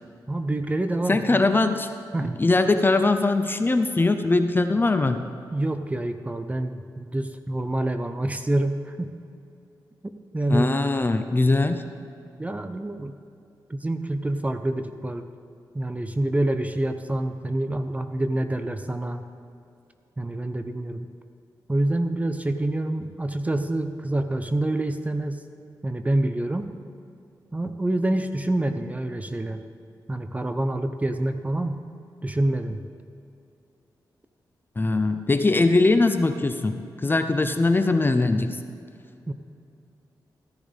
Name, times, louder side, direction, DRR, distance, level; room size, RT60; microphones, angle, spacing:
voice 1, 0.3-1.4 2.1-2.4 5.5-9.2 10.3-10.8 12.4-13.1 13.7-15.3 15.7-19.2 20.2-21.1 21.7-25.4 25.8-26.7 27.5-29.6 30.1-31.9 32.2-32.8 39.3-39.4, right 1 dB, 20° right, 8 dB, 0.7 m, -27 dB
voice 2, 1.1-1.9 2.2-5.2 10.5-11.8 34.8-38.6, left 2 dB, 25° left, 8 dB, 0.7 m, -21 dB
14.5 x 10.0 x 3.5 m, 2.6 s
cardioid pair, 70°, 8 cm